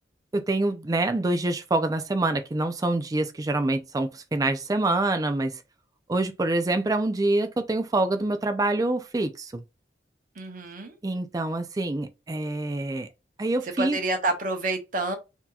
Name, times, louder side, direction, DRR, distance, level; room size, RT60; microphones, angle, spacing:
voice 1, 0.3-5.6 6.1-9.6 11.0-13.1 13.4-14.0, right 2 dB, 20° right, 0.4 m, -26 dB
voice 2, 10.4-10.9 13.6-15.2, right 2 dB, 50° right, 0.9 m, -28 dB
4.2 x 2.8 x 2.3 m
head